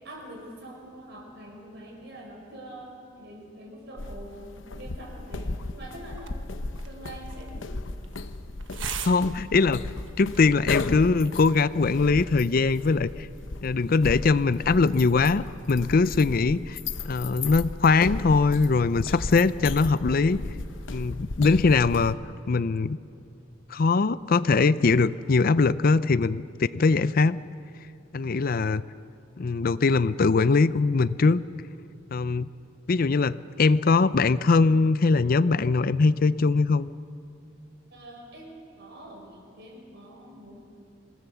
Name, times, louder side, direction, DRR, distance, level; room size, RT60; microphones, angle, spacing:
voice 1, 0.0-6.5 6.9-7.8 37.9-40.6, right 1 dB, 65° right, 0 dB, 6.2 m, -44 dB
sound 1, 4.0-22.1, left 3 dB, 85° left, 0.9 m, -35 dB
sound 2, 6.1-11.1, right 8 dB, 90° right, 1.4 m, -42 dB
voice 2, 9.0-9.8 10.2-13.3 13.6-16.8 17.0-20.4 20.9-22.2 22.5-23.0 23.7-27.4 28.1-28.8 29.4-31.4 32.1-32.5 32.9-36.9, left 4 dB, 50° left, 16 dB, 0.5 m, -22 dB
26.0 x 18.5 x 7.0 m, 2.6 s
head